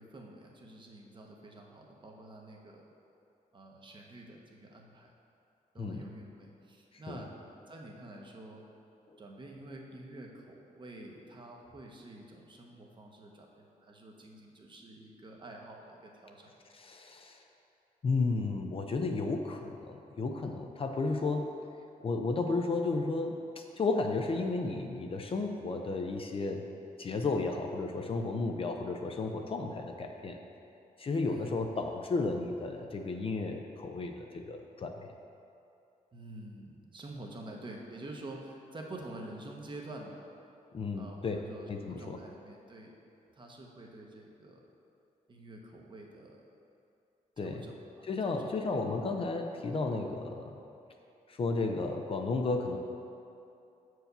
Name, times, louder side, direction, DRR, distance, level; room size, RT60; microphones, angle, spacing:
voice 1, 0.0-2.8 3.5-5.1 5.7-7.3 7.7-8.6 9.2-16.5 31.2-31.5 36.1-40.2 40.9-43.0 43.3-44.7 45.3-46.4 47.4-48.9, right 2 dB, 30° right, 0 dB, 0.9 m, -48 dB
voice 2, 5.8-6.1 7.1-7.2 16.7-17.4 18.0-21.5 22.0-26.7 27.0-30.4 31.0-35.0 40.7-41.4 41.7-42.2 47.4-47.7 48.0-50.6 51.3-52.8, left 3 dB, 40° left, 4 dB, 0.5 m, -33 dB
7.4 x 4.7 x 6.7 m, 2.7 s
wide cardioid pair, 155°, 15 cm